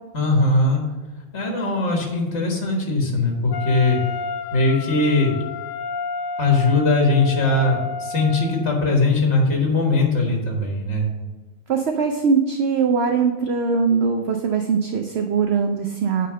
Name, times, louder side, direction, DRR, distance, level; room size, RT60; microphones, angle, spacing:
voice 1, 0.1-0.8 1.3-4.0 4.5-5.3 6.4-11.1, left 2 dB, 60° left, 0 dB, 1.8 m, -20 dB
Wind instrument woodwind instrument, 3.5-8.7, left 4 dB, 90° left, 1.0 m, -31 dB
voice 2, 11.7-16.3, right 5 dB, 60° right, 5 dB, 0.8 m, -21 dB
9.3 x 4.2 x 6.3 m, 1.2 s
omnidirectional pair, 1.3 m